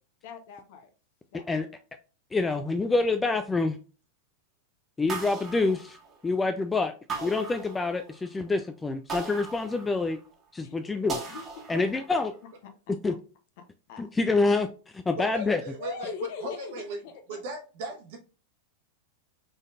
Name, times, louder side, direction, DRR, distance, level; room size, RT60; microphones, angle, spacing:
voice 1, 0.2-0.9 1.3-1.4 10.6-11.9 13.6-14.0 15.8-17.4, left 5 dB, 50° left, 7 dB, 0.9 m, -42 dB
voice 2, 2.3-3.8 5.0-6.0 6.2-6.9 7.2-10.2 10.5-11.2 11.7-12.3 13.0-13.2 14.0-15.6, left 3 dB, 10° left, 7 dB, 0.4 m, -26 dB
sound 1, 5.1-6.4 7.1-8.3 9.1-10.3 11.1-12.3, right 4 dB, 25° right, 1.5 m, -38 dB
voice 3, 15.2-16.1 16.4-17.0 17.3-18.2, right 1 dB, 50° right, 2 dB, 1.4 m, -37 dB
5.1 x 3.7 x 2.5 m, 0.36 s
figure-of-eight pair, 90°, 0 cm